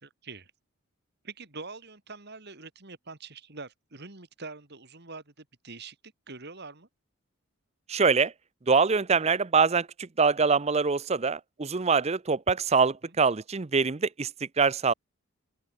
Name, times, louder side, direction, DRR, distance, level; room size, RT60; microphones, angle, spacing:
voice 1, 0.0-0.5 1.2-6.9 13.0-13.2, right 3 dB, 50° right, 2.8 m, -44 dB
voice 2, 7.9-8.3 8.7-14.9, right 5 dB, 30° right, 0.6 m, -24 dB
open air
head